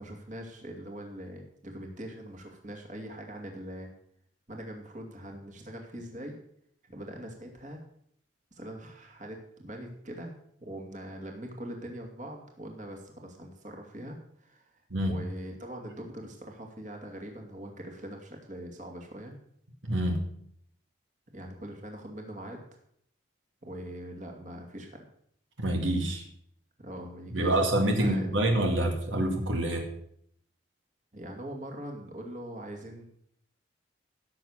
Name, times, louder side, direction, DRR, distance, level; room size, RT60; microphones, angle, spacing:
voice 1, 0.0-3.9 4.5-6.3 6.9-7.8 8.5-10.3 10.6-14.7 15.1-19.3 21.3-22.6 23.6-25.0 26.8-27.6 27.9-28.3 31.1-33.0, right 1 dB, 40° right, 2 dB, 2.6 m, -42 dB
voice 2, 19.8-20.3 25.6-26.3 27.3-29.9, right 1 dB, 80° right, 3 dB, 2.4 m, -27 dB
16.5 x 7.4 x 6.7 m, 0.68 s
head